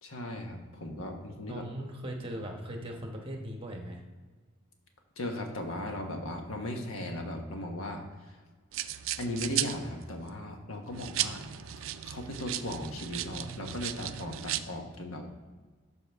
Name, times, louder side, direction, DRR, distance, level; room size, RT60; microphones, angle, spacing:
voice 1, 0.0-1.6 5.2-8.4 9.2-11.5 11.8-15.3, left 1 dB, 85° left, 3 dB, 1.2 m, -37 dB
voice 2, 1.5-4.0, equal, 25° right, 2 dB, 1.1 m, -39 dB
sound 1, 8.7-10.3 10.9-14.6, right 12 dB, 70° right, 0.4 m, -36 dB
12.0 x 4.9 x 3.5 m, 1.4 s
head